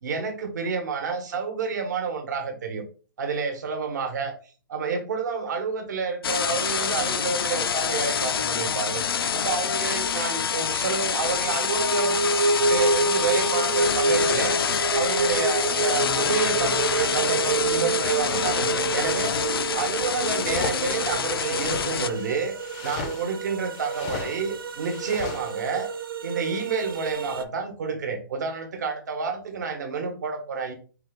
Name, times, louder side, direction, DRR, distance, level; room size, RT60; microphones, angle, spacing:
voice 1, 0.0-2.8 3.2-4.3 4.7-12.2 12.5-22.6 22.8-25.9 26.2-30.7, right 5 dB, 50° right, 1.0 m, -29 dB
sound 1, 6.2-22.1, left 7 dB, 90° left, 0.4 m, -26 dB
sound 2, 11.1-27.4, right 4 dB, 75° right, 0.6 m, -28 dB
sound 3, 18.3-25.5, left 5 dB, 20° left, 0.4 m, -38 dB
4.5 x 2.3 x 3.4 m
hypercardioid pair, 170°, 12 cm